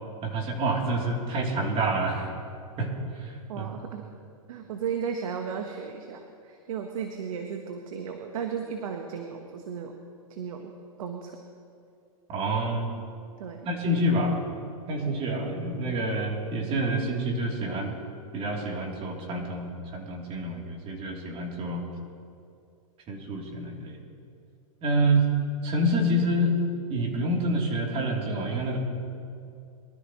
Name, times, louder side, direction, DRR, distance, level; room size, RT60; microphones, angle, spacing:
voice 1, 0.2-2.3 2.8-2.9 3.1-3.7 12.3-12.9 13.6-14.4 14.9-17.9 18.3-21.8 23.1-24.0 24.8-25.3 25.6-26.6 26.9-28.8, right 1 dB, 30° right, 0 dB, 3.1 m, -27 dB
voice 2, 3.5-4.0 4.5-10.0 10.3-10.7 11.0-11.4 13.4-13.7 16.0-16.1, right 6 dB, 70° right, 4 dB, 1.3 m, -35 dB
23.0 x 13.0 x 3.1 m, 2.5 s
hypercardioid pair, 120°, 18 cm